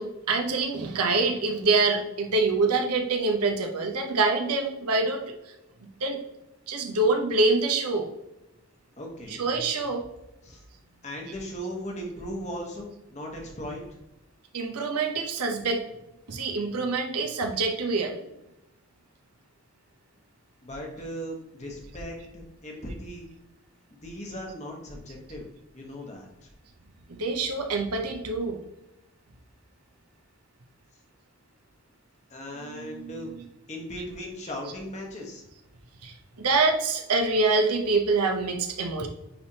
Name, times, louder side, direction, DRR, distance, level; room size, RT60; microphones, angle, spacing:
voice 1, 0.0-5.4 6.0-6.2 6.7-8.1 9.3-10.0 14.5-15.8 16.3-18.2 27.1-28.6 32.5-33.4 34.6-34.7 36.0-39.1, right 3 dB, 90° right, 3 dB, 0.9 m, -26 dB
voice 2, 9.0-9.5 10.4-10.6 11.0-14.0 20.6-23.3 23.9-26.5 32.3-33.4 33.7-35.4, equal, 30° left, 0 dB, 1.3 m, -38 dB
9.9 x 3.5 x 2.9 m, 0.92 s
head